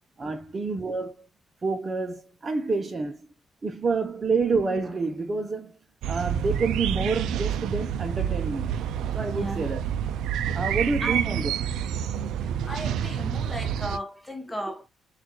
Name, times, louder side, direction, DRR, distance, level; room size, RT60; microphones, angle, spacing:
voice 1, 0.2-1.3 1.6-3.2 3.6-5.8 6.1-8.7 9.1-9.8 10.5-11.5, right 4 dB, 35° right, 0.7 m, -28 dB
sound 1, 6.0-14.0, right 9 dB, 80° right, 0.4 m, -28 dB
voice 2, 9.2-9.7 10.7-11.2 12.2-14.9, equal, 5° left, 1.0 m, -36 dB
6.0 x 2.5 x 3.0 m
cardioid pair, 90°, 0 cm